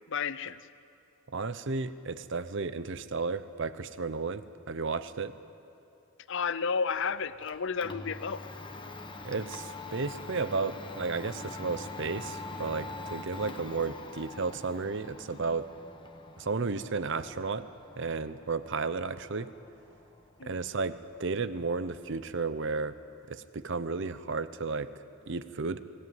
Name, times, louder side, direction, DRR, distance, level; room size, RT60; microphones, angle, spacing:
voice 1, 0.1-0.6 6.3-8.4 13.4-13.5 20.4-20.6, left 5 dB, 60° left, 15 dB, 0.6 m, -32 dB
voice 2, 1.3-5.3 9.2-15.7 16.4-17.7 18.0-19.5 20.4-22.9 23.3-24.9 25.3-25.8, right 4 dB, 55° right, 13 dB, 0.8 m, -33 dB
Domestic sounds home sounds, 7.0-22.8, left 2 dB, 20° left, 1.2 m, -45 dB
22.5 x 16.5 x 9.5 m, 2.6 s
head